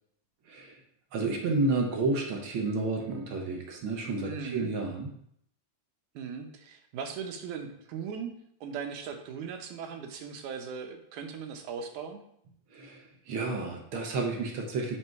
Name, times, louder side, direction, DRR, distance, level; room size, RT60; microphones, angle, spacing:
voice 1, 1.1-5.1 12.7-15.0, right 3 dB, 65° right, 2 dB, 1.3 m, -31 dB
voice 2, 4.2-4.7 6.2-8.3 8.6-12.2, right 6 dB, 85° right, 4 dB, 2.3 m, -38 dB
6.0 x 5.2 x 4.7 m, 0.71 s
omnidirectional pair, 3.4 m